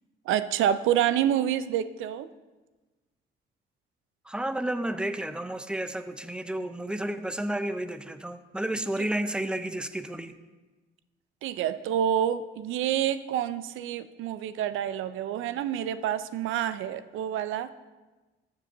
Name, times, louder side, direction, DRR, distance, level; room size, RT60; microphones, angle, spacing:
voice 1, 0.3-2.3 9.0-9.1 11.4-17.7, right 10 dB, 85° right, 14 dB, 0.5 m, -28 dB
voice 2, 4.3-10.3, right 1 dB, 5° right, 10 dB, 0.5 m, -31 dB
14.0 x 7.5 x 2.6 m, 1.2 s
cardioid pair, 90°, 20 cm